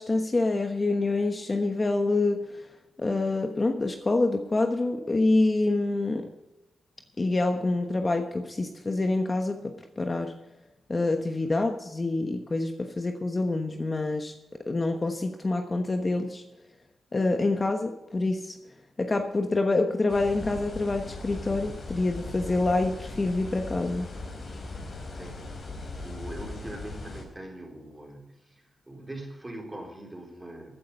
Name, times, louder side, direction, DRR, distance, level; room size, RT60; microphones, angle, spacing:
voice 1, 0.0-2.6 3.0-6.3 7.2-10.3 10.9-14.3 14.7-16.4 17.1-18.6 19.0-24.1, left 2 dB, 30° left, 4 dB, 1.2 m, -26 dB
sound 1, 20.1-27.2, left 2 dB, 50° left, 4.3 m, -39 dB
voice 2, 24.9-30.8, right 1 dB, 15° right, 1 dB, 4.0 m, -43 dB
15.0 x 9.5 x 5.5 m, 1.0 s
cardioid pair, 95°, 0 cm